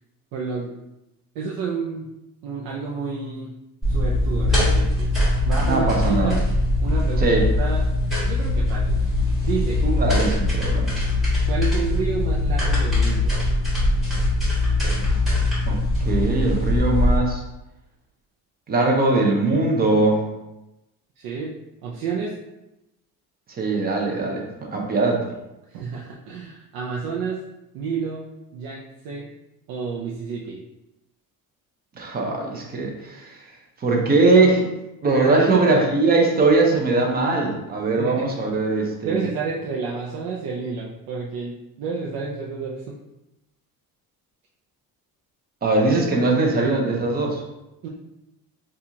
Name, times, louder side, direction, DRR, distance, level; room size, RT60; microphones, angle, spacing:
voice 1, 0.3-0.7 1.3-2.1 2.4-3.5 3.9-5.1 5.4-6.4 6.8-7.8 8.2-9.0 9.4-9.8 11.5-13.3 21.2-21.5 21.8-22.4 25.7-27.4 27.7-28.3 28.5-29.3 29.7-30.6 35.1-35.9 37.9-38.3 39.0-42.8 47.8-47.9, right 5 dB, 70° right, -3 dB, 0.6 m, -30 dB
sound 1, 3.8-17.2, left 2 dB, ahead, 1.2 m, -21 dB
voice 2, 5.6-6.4 7.2-7.5 9.8-10.9 15.6-17.4 18.7-20.2 23.6-25.2 32.0-33.4 33.8-34.7 35.0-39.3 45.6-47.4, right 3 dB, 25° right, 0 dB, 0.6 m, -21 dB
4.1 x 2.4 x 2.8 m, 0.94 s
cardioid pair, 160°, 36 cm